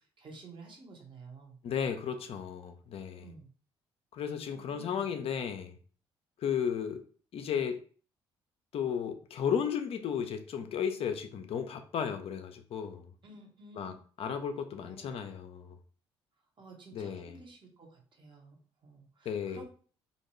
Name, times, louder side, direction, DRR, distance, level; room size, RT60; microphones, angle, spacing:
voice 1, 0.0-1.6 3.2-3.5 4.5-5.1 13.2-14.0 14.9-15.3 16.6-18.6 18.8-19.7, right 3 dB, 40° right, 1 dB, 0.9 m, -52 dB
voice 2, 1.6-3.3 4.1-5.8 6.4-7.0 7.3-7.8 8.7-13.1 13.7-15.8 16.9-17.4 19.3-19.7, left 7 dB, 50° left, 7 dB, 0.4 m, -34 dB
2.6 x 2.2 x 3.0 m, 0.42 s
hypercardioid pair, 50°, 13 cm